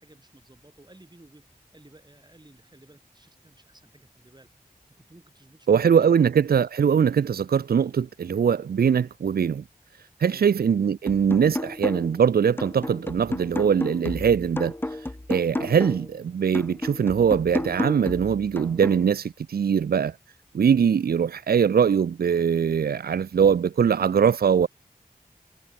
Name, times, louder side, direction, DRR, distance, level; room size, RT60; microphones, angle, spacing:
voice 1, 0.0-4.5 5.0-5.7 5.9-6.1 10.2-10.5, right 1 dB, 25° right, 6.5 m, -54 dB
voice 2, 5.7-9.6 10.2-14.8 15.3-20.1 20.5-24.7, right 7 dB, 80° right, 0.4 m, -22 dB
sound 1, 11.1-12.2 12.6-16.1 16.5-19.1, left 1 dB, 15° left, 0.6 m, -32 dB
wide cardioid pair, 55°, 16 cm